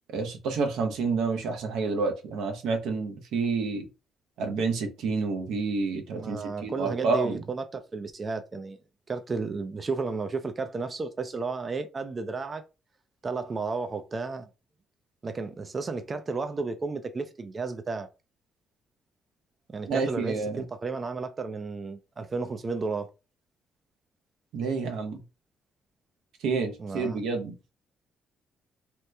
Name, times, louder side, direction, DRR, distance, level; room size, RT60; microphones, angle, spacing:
voice 1, 0.1-3.9 4.4-7.4 19.9-20.6 24.5-25.2 26.4-27.5, right 4 dB, 85° right, 0.7 m, -29 dB
voice 2, 6.1-8.8 9.1-12.6 13.2-14.5 15.2-18.1 19.7-23.1 26.8-27.2, right 4 dB, 35° right, 0.4 m, -33 dB
2.9 x 2.1 x 3.3 m
cardioid pair, 90°, 0 cm